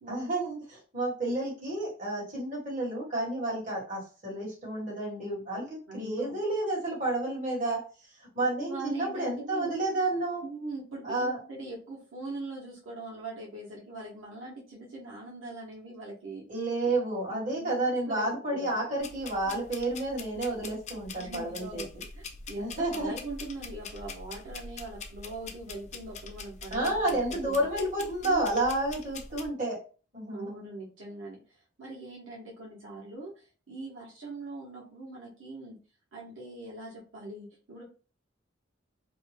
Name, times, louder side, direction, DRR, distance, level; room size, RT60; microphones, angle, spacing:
voice 1, 0.1-7.8 8.2-10.4 11.0-11.4 16.5-21.8 22.6-23.1 26.7-29.8 30.1-30.6, right 2 dB, 40° right, -5 dB, 1.3 m, -30 dB
voice 2, 5.9-6.4 8.4-9.7 10.4-16.4 17.3-18.7 19.4-19.6 21.2-21.9 22.1-27.5 28.2-28.5 30.3-35.8 36.1-37.8, right 2 dB, 90° right, -4 dB, 0.9 m, -42 dB
sound 1, 19.0-29.5, left 4 dB, 35° left, 0.4 m, -44 dB
2.5 x 2.1 x 3.2 m, 0.37 s
head